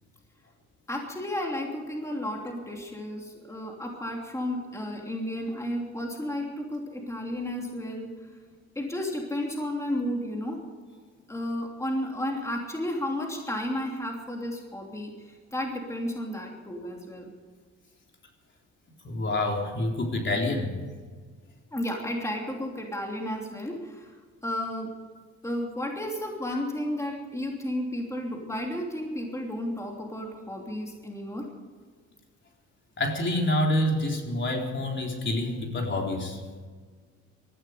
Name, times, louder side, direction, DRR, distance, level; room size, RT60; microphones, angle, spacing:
voice 1, 0.9-8.1 8.7-10.6 11.3-17.3 21.7-24.2 24.4-24.9 25.4-31.5, left 1 dB, 10° left, 0 dB, 3.0 m, -32 dB
voice 2, 19.0-20.8 33.0-36.4, left 1 dB, 40° left, 1 dB, 3.8 m, -27 dB
19.0 x 14.5 x 5.1 m, 1.5 s
cardioid pair, 90°, 30 cm